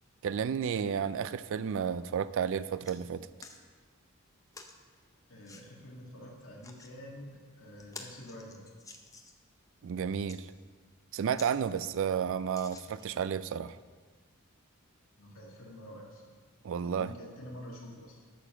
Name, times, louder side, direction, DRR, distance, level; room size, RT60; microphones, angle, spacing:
voice 1, 0.2-3.3 9.8-10.5 11.1-13.8 16.6-17.1, right 7 dB, 65° right, 15 dB, 0.4 m, -32 dB
sound 1, 2.8-3.0 3.4-3.6 4.5-4.8 5.4-5.6 6.4-6.9 7.4-7.5 7.8-9.5 10.1-10.4 10.9-11.0 11.3-11.5 11.9-12.0 12.5-13.2 13.9-14.0, left 3 dB, 15° left, 0.7 m, -50 dB
voice 2, 5.3-8.7 15.2-16.2 16.8-18.2, equal, 70° left, -2 dB, 2.1 m, -47 dB
8.8 x 7.0 x 6.2 m, 1.5 s
head